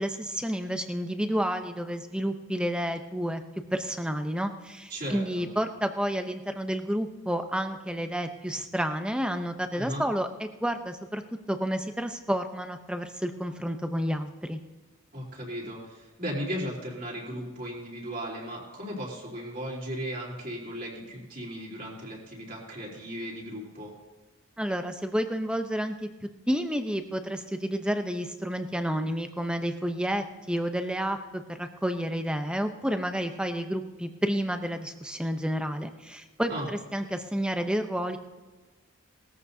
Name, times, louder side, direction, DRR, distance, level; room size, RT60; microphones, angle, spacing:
voice 1, 0.0-3.4 3.7-11.2 11.5-14.6 24.6-26.1 26.5-38.2, equal, 5° right, 7 dB, 0.7 m, -30 dB
voice 2, 4.9-5.5 9.8-10.1 15.1-23.9 36.5-36.7, equal, 40° right, -4 dB, 3.7 m, -36 dB
20.0 x 14.0 x 2.8 m, 1.2 s
head